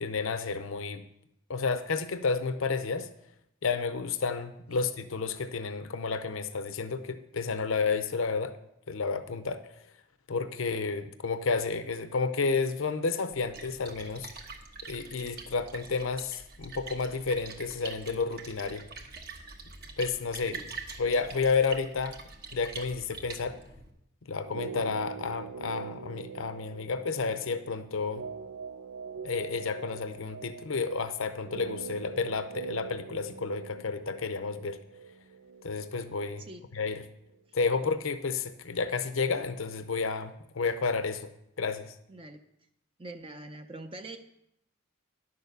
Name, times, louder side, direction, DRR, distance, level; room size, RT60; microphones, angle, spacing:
voice 1, 0.0-1.0 1.5-3.1 3.6-8.6 8.9-9.6 10.3-14.3 14.8-18.8 20.0-20.6 21.0-22.2 22.5-23.6 24.3-28.2 29.2-34.8 35.6-36.4 36.7-37.0 37.5-41.3 41.6-41.9, left 4 dB, 70° left, 10 dB, 0.6 m, -31 dB
Splash splatter, 13.3-23.9, right 4 dB, 45° right, 1.3 m, -45 dB
sound 1, 24.4-36.5 36.8-36.9, right 6 dB, 85° right, 0.4 m, -43 dB
voice 2, 36.4-36.7 37.5-37.6 42.1-42.4 43.0-44.2, right 2 dB, 25° right, 7 dB, 0.6 m, -44 dB
11.0 x 6.7 x 6.7 m, 0.80 s
head